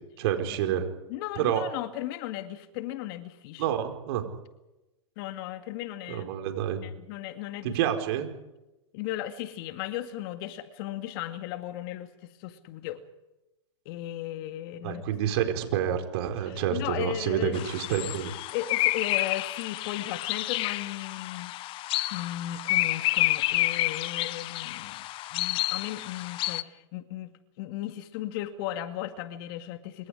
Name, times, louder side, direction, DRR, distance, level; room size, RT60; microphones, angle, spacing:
voice 1, 0.2-0.9 1.4-1.6 3.6-4.3 6.1-6.8 7.6-8.3 14.8-18.3, right 10 dB, 55° right, 5 dB, 4.7 m, -28 dB
voice 2, 1.1-3.7 5.2-6.3 6.8-7.8 8.9-13.0 13.9-15.0 16.5-17.6 18.5-21.5 22.1-25.1 25.3-30.1, left 13 dB, 50° left, 9 dB, 2.3 m, -36 dB
sound 1, 17.5-26.6, left 17 dB, 35° left, 0.8 m, -29 dB
27.5 x 25.0 x 5.0 m, 0.97 s
hypercardioid pair, 115°, 16 cm